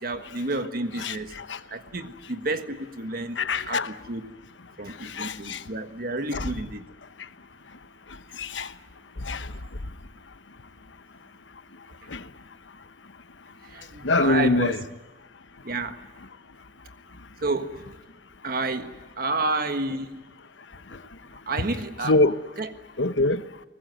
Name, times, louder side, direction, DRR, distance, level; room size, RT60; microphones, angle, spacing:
voice 1, 0.0-1.3 1.7-4.3 4.8-6.8 13.7-14.7 15.6-16.0 17.4-17.8 18.4-20.2 21.5-22.1 22.6-22.7, right 2 dB, 55° right, 1.5 m, -30 dB
voice 2, 1.0-1.6 3.4-3.9 5.0-5.6 6.3-6.5 8.4-8.7 9.2-9.5 12.1-12.2 14.0-14.8 20.9-21.0 22.0-22.4 23.0-23.4, left 2 dB, 85° left, 1.1 m, -24 dB
23.5 x 19.5 x 9.4 m
head